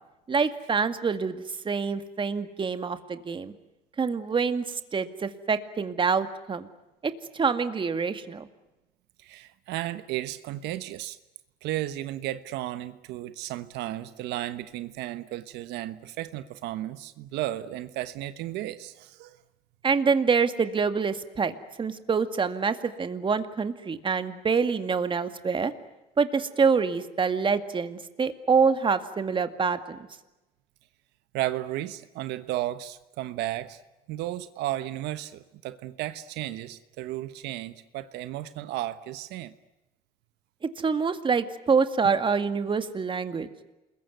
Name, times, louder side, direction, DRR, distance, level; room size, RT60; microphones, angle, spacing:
voice 1, 0.3-3.5 4.0-6.7 7.0-8.5 19.8-25.7 26.2-30.0 40.6-43.5, right 5 dB, 30° right, 9 dB, 2.0 m, -26 dB
voice 2, 9.2-11.2 11.6-19.4 31.3-33.8 34.1-39.5, right 14 dB, 90° right, 12 dB, 1.1 m, -34 dB
28.5 x 21.5 x 9.3 m, 1.0 s
cardioid pair, 110°, 17 cm